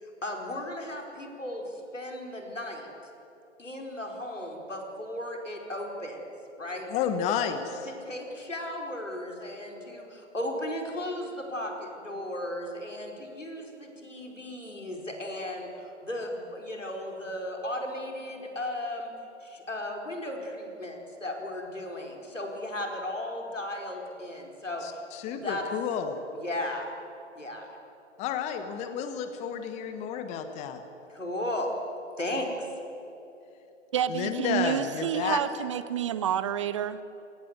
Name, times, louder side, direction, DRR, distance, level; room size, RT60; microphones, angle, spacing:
voice 1, 0.2-2.9 3.6-6.2 6.6-6.9 7.8-19.1 19.4-25.0 25.4-25.6 26.4-26.9 27.4-27.8 31.1-31.7 32.2-32.7, left 1 dB, 85° left, 1 dB, 4.7 m, -35 dB
voice 2, 6.9-7.9 24.8-26.2 28.2-30.8 34.1-35.4, left 8 dB, 20° left, 9 dB, 1.3 m, -31 dB
voice 3, 33.9-37.0, right 10 dB, 25° right, 15 dB, 0.6 m, -29 dB
29.5 x 18.5 x 8.1 m, 3.0 s
figure-of-eight pair, 125°, 36 cm